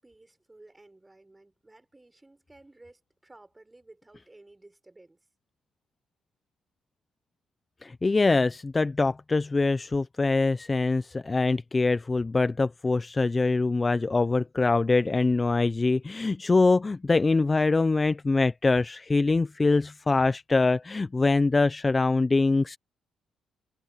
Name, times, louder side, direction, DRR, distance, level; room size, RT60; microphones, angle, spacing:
voice 1, 0.0-5.2, right 2 dB, 15° right, 6.0 m, -55 dB
voice 2, 7.8-22.8, left 3 dB, 25° left, 0.5 m, -24 dB
cardioid pair, 90°, 0 cm